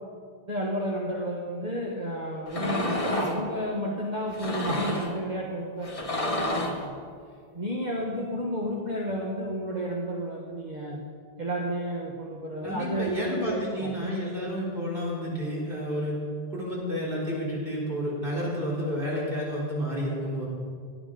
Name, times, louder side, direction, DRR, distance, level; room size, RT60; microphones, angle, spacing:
voice 1, 0.5-7.0 7.5-11.0 11.4-13.9, equal, 45° right, -2 dB, 1.6 m, -32 dB
sound 1, 2.5-3.4 4.3-5.2 5.8-6.9, left 1 dB, 35° left, 1.4 m, -30 dB
voice 2, 12.6-16.2 16.5-20.4, equal, 60° right, -5 dB, 4.2 m, -30 dB
16.5 x 11.0 x 5.2 m, 2.1 s
omnidirectional pair, 1.0 m